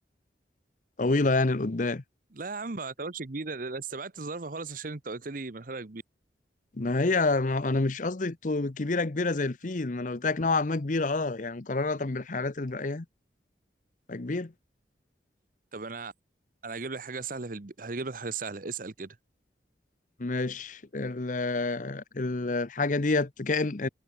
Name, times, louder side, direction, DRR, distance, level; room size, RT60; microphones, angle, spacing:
voice 1, 1.0-2.0 6.7-13.0 14.1-14.5 20.2-23.9, left 3 dB, 45° left, 0.8 m, -28 dB
voice 2, 2.3-6.0 15.7-16.1 16.6-19.2, right 4 dB, 50° right, 1.0 m, -36 dB
head